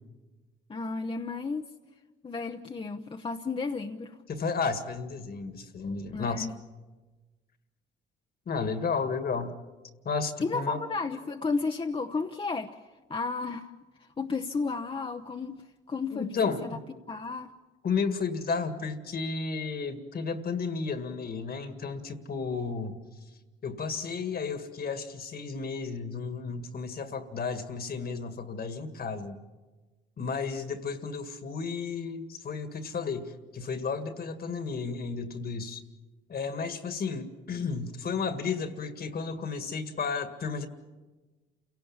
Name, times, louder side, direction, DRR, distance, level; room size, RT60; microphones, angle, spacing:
voice 1, 0.7-1.6 2.2-4.2 6.1-6.5 10.4-12.8 13.1-13.7 14.2-16.3 17.1-17.5, left 4 dB, 25° left, 4 dB, 0.9 m, -33 dB
voice 2, 4.3-6.5 8.5-9.6 10.1-10.8 16.1-16.8 17.8-23.0 23.6-29.4 30.2-35.8 36.3-40.7, left 5 dB, 50° left, 9 dB, 1.9 m, -33 dB
29.0 x 17.5 x 7.3 m, 1.3 s
cardioid pair, 90°, 20 cm